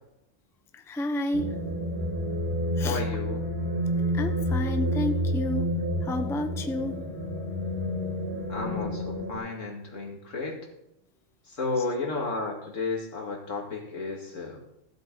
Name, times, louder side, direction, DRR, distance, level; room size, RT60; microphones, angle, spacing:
voice 1, 0.9-1.5 2.8-3.0 4.1-5.7 6.0-7.0, left 1 dB, 5° left, 7 dB, 0.5 m, -30 dB
sound 1, 1.3-9.4, equal, 50° right, 3.2 m, -29 dB
voice 2, 2.8-3.4 8.5-10.6 11.5-14.6, left 3 dB, 80° left, 0 dB, 2.5 m, -32 dB
15.5 x 8.0 x 3.9 m, 0.82 s
omnidirectional pair, 1.3 m